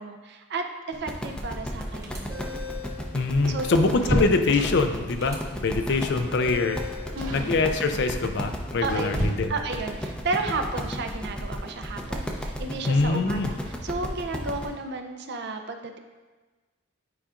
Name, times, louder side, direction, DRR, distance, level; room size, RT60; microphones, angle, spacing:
voice 1, 0.0-2.3 3.5-3.9 7.2-7.5 8.8-9.1 9.5-16.0, right 3 dB, 55° right, 6 dB, 0.6 m, -32 dB
sound 1, 0.9-14.6, equal, 5° left, 0.6 m, -34 dB
sound 2, 2.0-2.9 5.2-5.4 6.4-7.0, left 4 dB, 15° right, 0.9 m, -38 dB
sound 3, 2.5-5.1 5.8-6.2 6.5-6.7 7.2-7.5 8.4-9.8 11.6-11.7 12.1-12.2 13.3-13.8 14.1-14.2 14.5-14.7, equal, 75° right, 2.1 m, -31 dB
voice 2, 3.1-6.9 7.3-9.5 12.9-13.5, left 3 dB, 55° left, 7 dB, 0.5 m, -24 dB
9.8 x 5.0 x 2.5 m, 1.3 s
head